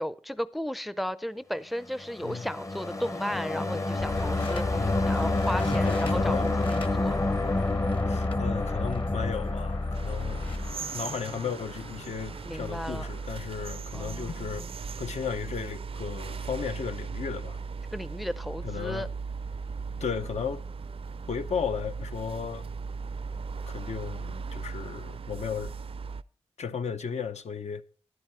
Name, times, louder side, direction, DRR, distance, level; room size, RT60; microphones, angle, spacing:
voice 1, 0.0-7.2 12.4-13.1 13.9-14.8 17.9-19.1, equal, ahead, 0.5 m, -34 dB
sound 1, 2.0-10.7, left 2 dB, 25° left, 0.7 m, -30 dB
sound 2, 4.0-13.9, left 2 dB, 50° left, 1.5 m, -33 dB
voice 2, 4.7-5.5 5.9-6.5 8.1-10.4 10.9-14.7 15.0-17.6 18.6-19.1 20.0-20.6 21.3-22.7 23.7-25.7 26.6-27.8, left 6 dB, 75° left, 0.7 m, -35 dB
sound 3, 9.9-26.2, right 5 dB, 55° right, 0.4 m, -38 dB
11.0 x 10.5 x 4.4 m
wide cardioid pair, 80°, 12 cm